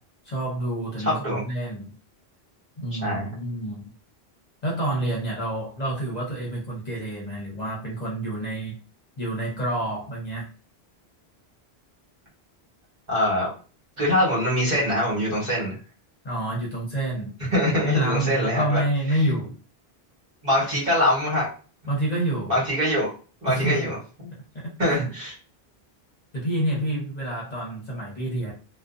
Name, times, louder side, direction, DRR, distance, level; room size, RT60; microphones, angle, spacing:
voice 1, 0.2-1.9 2.8-3.8 4.6-8.8 9.2-10.5 16.2-17.3 17.8-19.6 21.9-22.6 23.5-23.9 24.5-25.1 26.3-28.5, right 1 dB, 45° left, -3 dB, 0.8 m, -28 dB
voice 2, 1.0-1.4 3.0-3.3 13.1-13.5 14.0-15.8 17.5-18.8 20.4-21.5 22.5-23.1 23.4-24.0 24.2-24.3 24.8-25.3, left 1 dB, 45° right, -7 dB, 1.3 m, -23 dB
2.5 x 2.2 x 2.4 m, 0.37 s
omnidirectional pair, 1.1 m